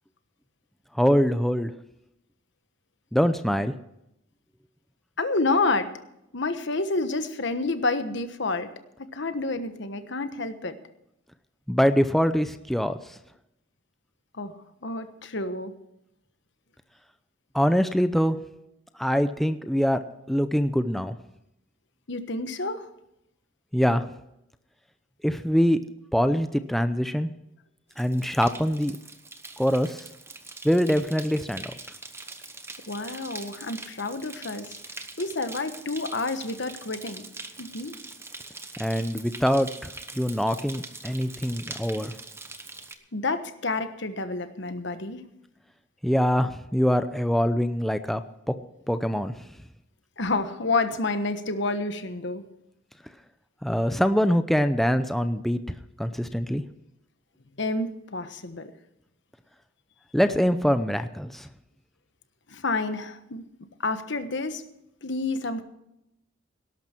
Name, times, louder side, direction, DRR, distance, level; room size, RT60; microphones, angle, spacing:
voice 1, 0.9-1.7 3.1-3.7 11.7-13.0 17.5-18.4 19.0-20.0 20.3-21.1 23.7-24.1 25.2-25.8 26.1-27.3 28.0-29.0 29.6-30.0 30.6-31.6 38.8-39.9 40.2-42.1 46.0-48.2 48.5-48.6 48.9-49.3 53.6-55.6 56.0-56.6 60.1-61.5, equal, ahead, 9 dB, 0.6 m, -23 dB
voice 2, 5.2-5.9 6.3-8.7 9.0-10.8 14.3-14.5 14.8-15.7 22.1-22.9 32.9-34.8 35.2-37.2 37.6-38.0 43.1-45.2 50.2-52.5 57.6-58.7 62.5-63.5 63.8-64.6 65.0-65.6, left 3 dB, 65° left, 10 dB, 1.3 m, -29 dB
sound 1, 27.9-42.9, right 3 dB, 15° right, 1.1 m, -43 dB
18.0 x 12.0 x 4.5 m, 0.82 s
head